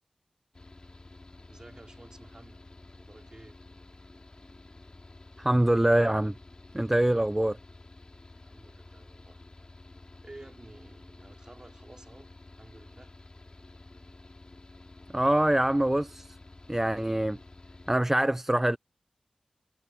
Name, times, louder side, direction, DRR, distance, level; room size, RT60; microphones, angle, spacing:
Mechanical fan, 0.5-18.0, left 2 dB, 40° left, 6.6 m, -51 dB
voice 1, 1.5-2.6 2.9-3.6 8.4-9.4 10.2-12.3 12.5-13.1, right 2 dB, 35° right, 4.1 m, -52 dB
voice 2, 5.4-6.4 6.7-7.6 15.1-16.4 16.7-17.4 17.9-18.8, right 1 dB, 15° right, 0.6 m, -24 dB
wide cardioid pair, 65°, 2 cm